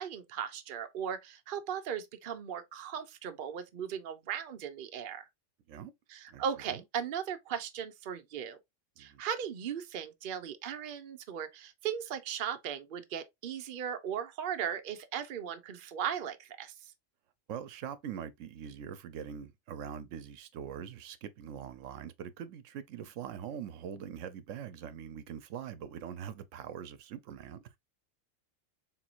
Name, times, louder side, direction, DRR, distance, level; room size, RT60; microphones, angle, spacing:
voice 1, 0.0-5.3 6.1-8.6 9.0-16.7, right 8 dB, 50° right, 0.7 m, -37 dB
voice 2, 17.5-27.7, right 8 dB, 85° right, 1.0 m, -43 dB
4.5 x 3.7 x 2.4 m
omnidirectional pair, 1.3 m